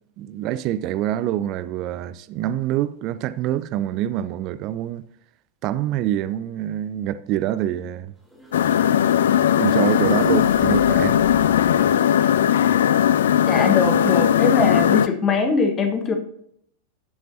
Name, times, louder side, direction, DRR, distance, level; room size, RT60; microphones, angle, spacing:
voice 1, 0.2-5.0 5.6-8.1 8.6-8.9 9.6-11.2, right 12 dB, 40° right, 0.4 m, -26 dB
sound 1, 8.2-12.0, left 3 dB, 5° left, 4.3 m, -38 dB
sound 2, 8.5-15.1, left 10 dB, 60° left, 0.3 m, -18 dB
voice 2, 13.5-16.1, left 4 dB, 25° left, 1.5 m, -21 dB
14.5 x 7.5 x 2.8 m
figure-of-eight pair, 90°, 0 cm